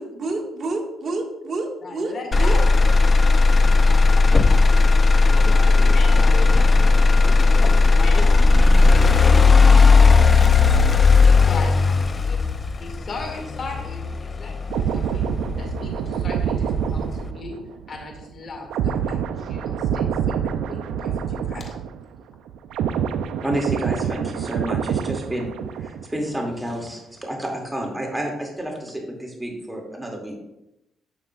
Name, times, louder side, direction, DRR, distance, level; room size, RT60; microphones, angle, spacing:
voice 1, 0.0-2.6, right 2 dB, 50° right, 1 dB, 1.7 m, -28 dB
voice 2, 1.8-2.6 3.8-7.0 8.0-8.4 8.7-9.9 11.1-12.5 12.8-15.3 15.6-17.6 17.9-21.7, left 3 dB, 50° left, 2 dB, 2.2 m, -37 dB
Motor vehicle (road), 2.3-16.3 16.8-17.3, left 4 dB, 30° left, 0.5 m, -15 dB
sound 1, 5.9-6.8 8.0-8.8 10.0-10.8, left 4 dB, 80° left, 1.3 m, -40 dB
sound 2, 14.7-22.2 22.5-26.2 26.5-26.7, right 8 dB, 85° right, 0.4 m, -26 dB
voice 3, 23.4-25.5 25.8-30.3, right 1 dB, 5° right, 0 dB, 2.4 m, -30 dB
11.5 x 6.8 x 2.4 m, 0.88 s
cardioid pair, 90°, 0 cm